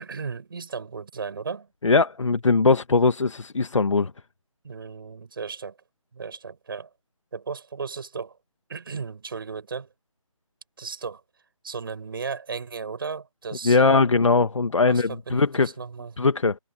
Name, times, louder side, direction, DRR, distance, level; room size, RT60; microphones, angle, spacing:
voice 1, 0.0-1.7 4.6-5.8 6.1-6.9 7.3-8.4 8.7-9.9 10.8-11.2 11.6-14.1 14.9-16.1, right 5 dB, 40° right, 7.9 m, -35 dB
voice 2, 1.8-4.1 13.6-15.7 16.2-16.6, left 4 dB, 60° left, 1.7 m, -20 dB
figure-of-eight pair, 170°, 18 cm